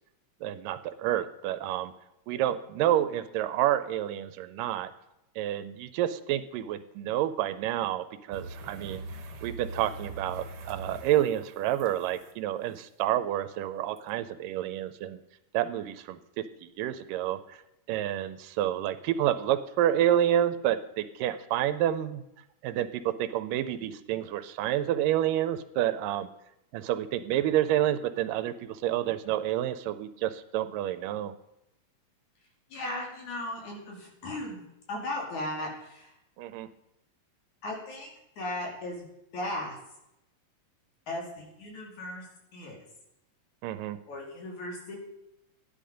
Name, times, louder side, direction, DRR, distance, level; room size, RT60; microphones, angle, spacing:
voice 1, 0.4-1.9 2.3-4.9 5.4-9.0 9.4-15.2 15.5-17.6 17.9-22.2 22.6-26.3 26.7-31.3 36.4-36.7 43.6-44.0, right 12 dB, 85° right, 12 dB, 2.3 m, -29 dB
sound 1, 8.3-12.3 14.0-14.1, right 2 dB, 55° right, 1.7 m, -42 dB
voice 2, 32.7-34.6 34.9-36.1 37.6-38.1 38.4-39.0 39.3-39.8 41.1-42.3 42.5-42.8 44.1-45.0, left 1 dB, 60° left, -1 dB, 3.9 m, -36 dB
13.0 x 10.5 x 5.2 m, 0.87 s
omnidirectional pair, 3.8 m